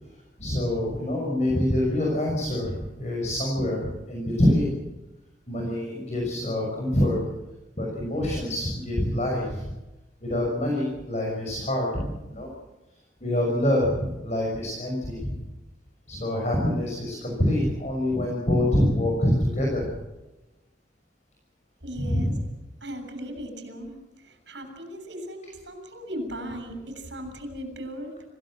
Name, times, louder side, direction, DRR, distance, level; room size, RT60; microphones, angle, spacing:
voice 1, 0.4-4.7 5.5-7.2 7.8-9.7 10.2-12.5 13.2-15.4 16.1-19.9 22.0-22.3, left 1 dB, 40° left, -1 dB, 6.0 m, -25 dB
voice 2, 21.8-22.4 22.8-28.1, equal, 70° right, 7 dB, 7.2 m, -37 dB
27.0 x 17.5 x 7.6 m, 1.0 s
head